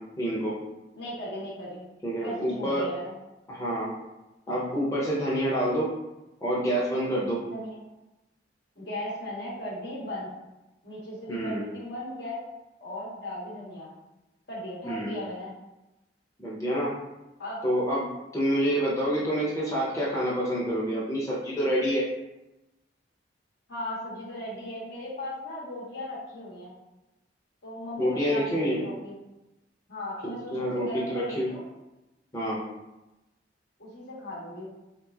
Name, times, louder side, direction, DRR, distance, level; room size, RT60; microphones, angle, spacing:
voice 1, 0.2-0.5 2.0-2.8 3.5-3.9 4.5-5.9 6.4-7.4 11.3-11.6 14.9-15.1 16.4-16.9 17.6-18.0 18.3-22.0 28.0-28.8 30.2-31.5 32.3-32.6, equal, 20° left, -7 dB, 0.6 m, -27 dB
voice 2, 0.9-1.8 2.2-3.1 7.5-7.8 8.8-10.3 10.8-12.4 12.8-13.9 14.5-15.5 17.4-17.6 23.7-26.7 27.6-29.2 29.9-31.6 33.8-34.7, left 1 dB, 65° left, -5 dB, 1.1 m, -37 dB
3.4 x 2.9 x 2.3 m, 0.99 s
head